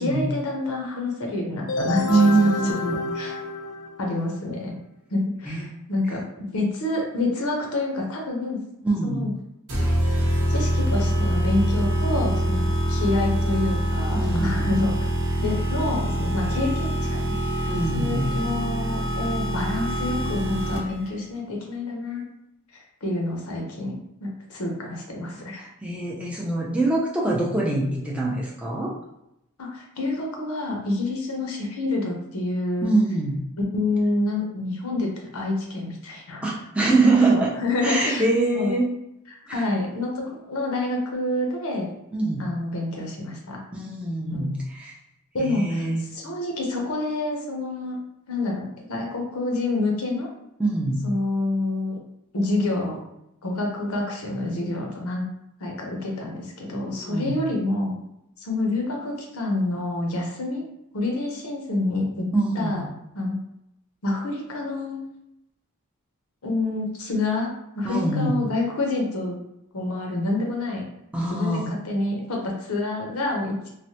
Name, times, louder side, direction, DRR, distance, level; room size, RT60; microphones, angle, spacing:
voice 1, 0.0-2.1 3.1-3.3 4.0-4.7 5.1-8.6 9.0-9.3 10.5-12.6 12.9-15.0 15.4-16.9 17.6-17.7 17.9-22.2 23.0-25.6 29.6-32.9 33.7-36.5 36.8-36.9 37.3-38.2 38.5-38.7 39.3-41.9 42.4-43.6 44.3-44.5 45.3-45.9 46.1-48.0 48.3-50.3 51.0-52.0 52.3-53.0 53.4-55.3 55.6-57.9 58.4-60.6 60.9-62.2 62.5-62.8 63.1-63.4 64.0-65.0 66.4-67.5 67.7-69.4 69.7-70.8 71.1-73.7, left 2 dB, 80° left, 0 dB, 0.7 m, -27 dB
sound 1, 1.7-4.4, left 3 dB, 60° left, 0.3 m, -28 dB
voice 2, 2.1-2.9 5.4-5.7 8.8-9.3 14.2-14.7 17.7-18.3 25.6-28.9 32.8-33.4 36.4-37.5 37.8-38.9 39.5-39.6 42.1-42.5 43.7-44.9 45.4-46.0 50.6-51.1 57.0-57.4 62.3-62.8 67.8-68.4 71.1-71.7, right 2 dB, 5° right, -4 dB, 0.4 m, -24 dB
sound 2, 9.7-21.1, equal, 70° right, 0.8 m, -25 dB
3.2 x 2.1 x 2.8 m, 0.84 s
head